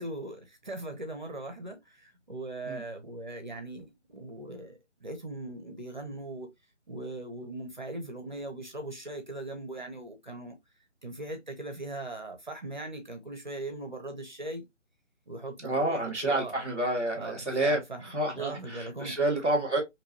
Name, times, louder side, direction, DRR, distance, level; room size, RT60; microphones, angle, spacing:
voice 1, 0.0-6.5 6.9-10.6 11.0-14.6 15.3-16.5 17.2-18.0 18.3-19.2, right 2 dB, 40° right, 0.6 m, -39 dB
voice 2, 15.6-19.8, right 1 dB, 10° left, 0.8 m, -29 dB
3.6 x 2.7 x 2.7 m
figure-of-eight pair, 150°, 37 cm